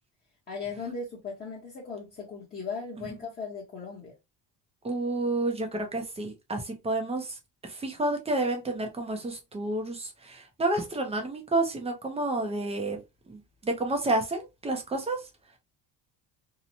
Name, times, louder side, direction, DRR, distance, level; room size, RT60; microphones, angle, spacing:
voice 1, 0.5-4.1, left 4 dB, 20° left, 0.8 m, -37 dB
voice 2, 4.8-7.3 7.6-13.0 13.3-15.2, right 2 dB, 15° right, 0.4 m, -30 dB
2.9 x 2.1 x 2.6 m
cardioid pair, 150°, 45 cm